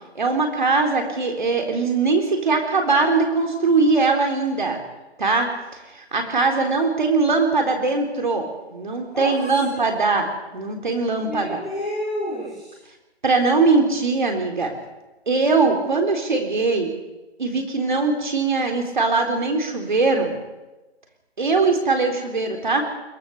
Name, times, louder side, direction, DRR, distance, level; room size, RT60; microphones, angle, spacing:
voice 1, 0.2-4.8 5.2-5.5 5.9-8.5 8.7-11.6 13.2-14.7 15.3-16.9 17.4-20.3 21.4-22.8, right 3 dB, 45° right, 4 dB, 3.8 m, -21 dB
voice 2, 9.1-9.7 11.2-12.7, equal, ahead, -19 dB, 1.0 m, -29 dB
22.5 x 17.0 x 7.1 m, 1.1 s
hypercardioid pair, 180°, 33 cm